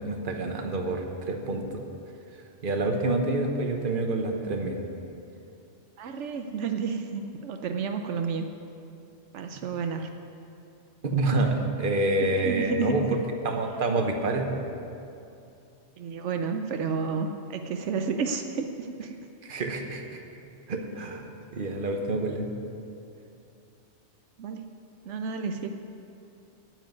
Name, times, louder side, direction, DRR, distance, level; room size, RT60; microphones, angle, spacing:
voice 1, 0.0-1.8 2.6-4.8 11.0-13.2 13.4-14.6 19.4-20.2 20.7-21.2 21.5-22.5, right 2 dB, 50° right, 3 dB, 1.2 m, -27 dB
voice 2, 6.0-8.5 9.3-10.1 12.2-13.1 16.0-19.1 24.4-24.7 25.1-25.7, right 5 dB, 80° right, 5 dB, 1.0 m, -31 dB
9.2 x 7.9 x 9.4 m, 2.7 s
omnidirectional pair, 1.2 m